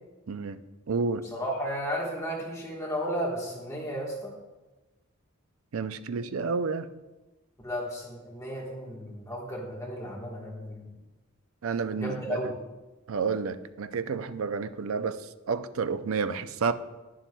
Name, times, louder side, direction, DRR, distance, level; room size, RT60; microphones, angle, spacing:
voice 1, 0.3-0.6 0.9-1.2 5.7-6.9 11.6-12.4 13.1-15.2 15.5-16.7, right 5 dB, 85° right, 12 dB, 0.5 m, -30 dB
voice 2, 1.3-4.3 7.6-10.9 12.0-12.6, equal, 15° left, -3 dB, 1.3 m, -34 dB
11.5 x 10.5 x 2.3 m, 1.1 s
head